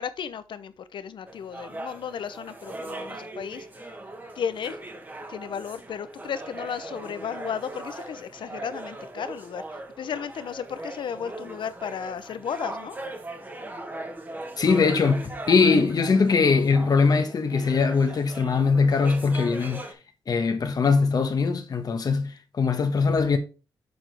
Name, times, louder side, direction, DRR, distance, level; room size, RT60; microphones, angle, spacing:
voice 1, 0.0-3.7 4.3-4.8 5.3-13.0, left 7 dB, 75° left, 0.7 m, -34 dB
sound 1, 1.3-19.9, right 2 dB, 20° right, 1.3 m, -39 dB
voice 2, 14.6-19.8 20.3-23.4, left 4 dB, 50° left, 1.1 m, -21 dB
6.9 x 6.0 x 3.4 m
wide cardioid pair, 135°, 8 cm